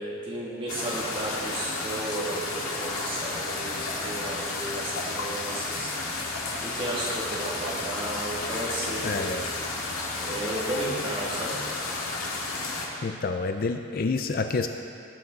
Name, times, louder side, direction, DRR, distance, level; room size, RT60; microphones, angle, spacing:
voice 1, 0.0-5.9 6.6-9.3 10.2-11.6, right 1 dB, 25° right, -7 dB, 2.6 m, -33 dB
sound 1, 0.7-12.9, left 3 dB, 85° left, 2.0 m, -32 dB
voice 2, 9.0-9.4 12.7-12.8 13.0-14.7, left 4 dB, 45° left, 6 dB, 0.4 m, -28 dB
19.5 x 7.6 x 4.1 m, 2.5 s
head